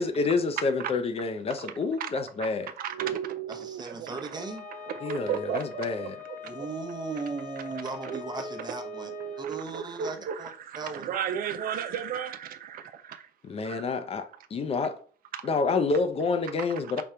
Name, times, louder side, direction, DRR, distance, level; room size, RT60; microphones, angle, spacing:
voice 1, 0.0-2.7 5.0-6.2 13.4-15.0 15.4-17.0, left 4 dB, 35° left, 0.6 m, -28 dB
voice 2, 2.8-6.7 8.0-13.3 13.6-13.9 15.3-15.6 16.7-16.8, right 8 dB, 60° right, 0.5 m, -35 dB
voice 3, 3.5-4.7 6.4-9.1 9.4-10.5 10.8-11.1, right 4 dB, 25° right, 0.8 m, -37 dB
Wind instrument woodwind instrument, 4.3-9.5, left 10 dB, 55° left, 1.3 m, -43 dB
5.1 x 2.3 x 4.3 m
cardioid pair, 110°, 17 cm